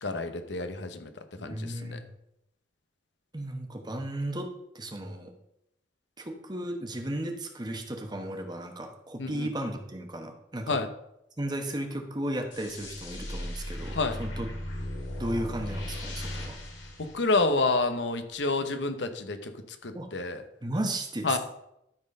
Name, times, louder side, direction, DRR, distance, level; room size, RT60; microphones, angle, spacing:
voice 1, 0.0-1.1 1.4-2.0 9.2-9.5 10.7-10.9 13.9-14.1 17.0-19.5 19.8-20.4 21.2-21.4, left 3 dB, 70° left, 8 dB, 1.0 m, -29 dB
voice 2, 1.4-2.0 3.3-5.3 6.2-10.8 11.4-14.5 15.2-16.6 19.9-20.1 20.6-21.4, right 1 dB, 25° right, 4 dB, 1.1 m, -35 dB
sound 1, 12.5-17.9, left 1 dB, 85° left, 2.8 m, -37 dB
12.5 x 4.3 x 5.3 m, 0.80 s
head